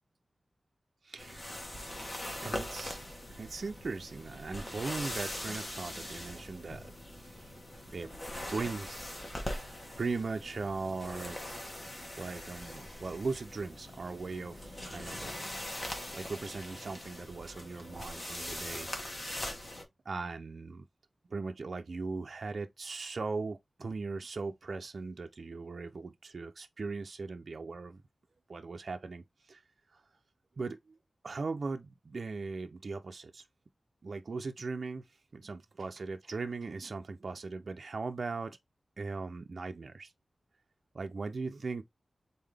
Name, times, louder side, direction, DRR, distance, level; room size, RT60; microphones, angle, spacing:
voice 1, 1.0-1.6 2.4-3.0 3.3-6.9 7.2-7.7 7.9-8.2 8.5-9.5 10.0-11.4 12.2-15.6 16.1-19.6 20.1-20.9 21.3-28.0 28.5-29.6 29.9-30.0 30.6-30.9 31.2-33.5 34.0-38.6 39.0-40.1 40.9-41.8, right 4 dB, 60° right, 0.4 m, -39 dB
sound 1, 1.2-19.8, left 1 dB, 35° left, 1.3 m, -42 dB
sound 2, 2.0-18.3 18.6-19.7, right 1 dB, 75° left, 1.9 m, -62 dB
3.9 x 3.7 x 3.4 m
wide cardioid pair, 115°, 0 cm